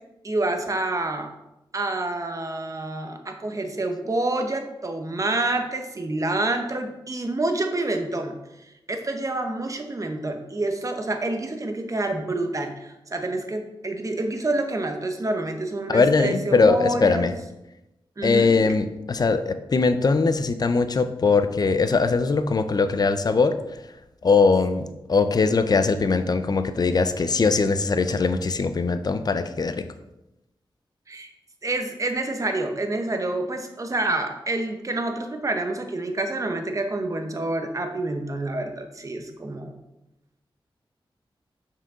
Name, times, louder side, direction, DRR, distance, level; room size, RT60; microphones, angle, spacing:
voice 1, 0.2-1.3 1.7-8.3 8.6-17.3 18.2-18.7 31.1-31.3 31.6-39.7, right 2 dB, 35° right, 5 dB, 0.8 m, -28 dB
voice 2, 15.9-17.3 18.2-23.6 24.2-24.8 25.1-29.8, left 4 dB, 45° left, 10 dB, 0.5 m, -21 dB
6.0 x 4.8 x 3.7 m, 0.93 s
wide cardioid pair, 80°, 9 cm